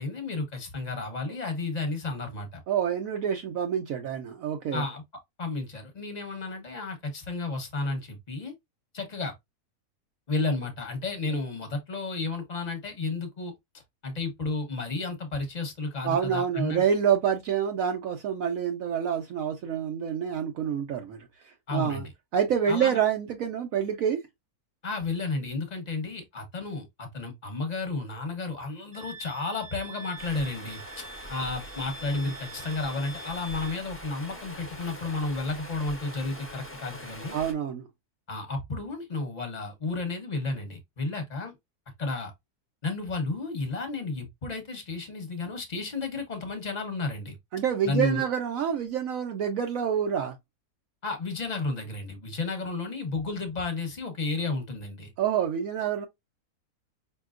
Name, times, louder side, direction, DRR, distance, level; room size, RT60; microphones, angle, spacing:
voice 1, 0.0-2.6 4.7-5.0 5.4-8.5 8.9-9.3 10.3-13.5 14.0-16.8 21.7-22.1 22.7-23.0 24.8-37.4 38.3-41.5 42.0-42.3 42.8-47.4 47.8-48.2 51.0-55.1, left 3 dB, 30° left, 1.0 m, -32 dB
voice 2, 2.7-4.8 16.0-21.2 21.7-22.0 22.3-24.2 37.3-37.9 47.5-50.3 55.2-56.1, right 8 dB, 70° right, 1.0 m, -27 dB
Wind instrument woodwind instrument, 28.9-33.8, right 2 dB, 35° right, 0.5 m, -45 dB
Stream, 30.2-37.5, equal, 10° left, 0.7 m, -43 dB
5.3 x 2.8 x 2.4 m
omnidirectional pair, 1.6 m